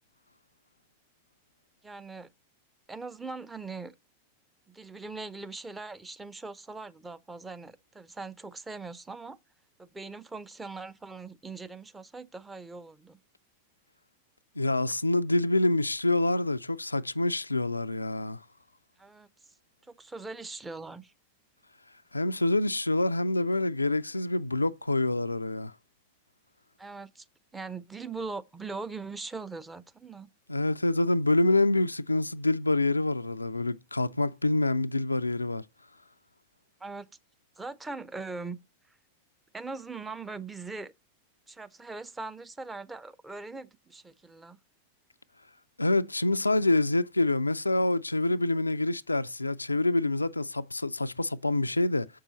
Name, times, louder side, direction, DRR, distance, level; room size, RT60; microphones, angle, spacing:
voice 1, 1.8-2.3 2.9-3.9 4.7-9.4 9.8-13.2 19.0-19.3 19.9-21.1 26.8-27.3 27.5-30.3 36.8-37.1 37.6-38.6 38.9-39.0 39.5-40.9 41.5-44.6, right 3 dB, 10° right, 0.6 m, -41 dB
voice 2, 14.6-18.4 22.1-25.7 30.5-35.6 45.8-52.1, left 2 dB, 80° left, 0.3 m, -26 dB
7.2 x 5.5 x 4.0 m
figure-of-eight pair, 90°, 0 cm